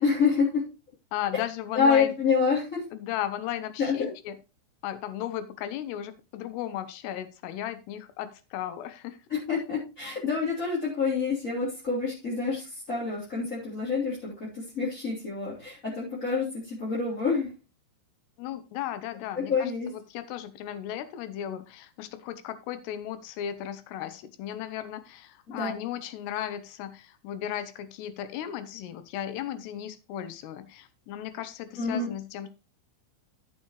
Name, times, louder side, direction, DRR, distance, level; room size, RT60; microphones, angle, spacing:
voice 1, 0.0-0.7 1.7-2.8 3.8-4.1 9.3-17.5 19.5-19.9 25.5-25.7 31.8-32.1, left 5 dB, 20° left, -7 dB, 2.8 m, -27 dB
voice 2, 1.1-2.1 2.9-4.4 4.8-9.2 18.4-32.5, left 11 dB, 80° left, 12 dB, 2.5 m, -36 dB
13.5 x 7.3 x 3.1 m, 0.29 s
omnidirectional pair, 5.8 m